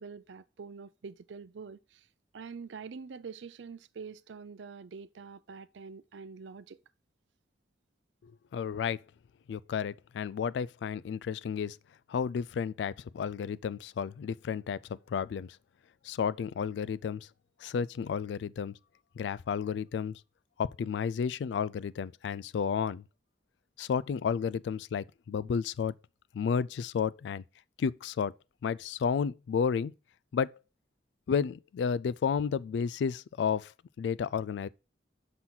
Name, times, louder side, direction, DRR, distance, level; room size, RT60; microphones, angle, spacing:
voice 1, 0.0-2.0 2.3-6.8, right 5 dB, 85° right, 0.5 m, -45 dB
voice 2, 8.5-9.0 9.5-11.8 12.1-14.8 15.1-15.6 16.0-17.3 17.6-18.7 19.2-20.1 20.6-23.0 23.8-25.9 26.3-27.4 27.8-28.3 28.6-29.9 30.3-30.5 31.3-33.7 34.0-34.7, left 6 dB, 80° left, 0.3 m, -32 dB
6.0 x 5.8 x 3.8 m
head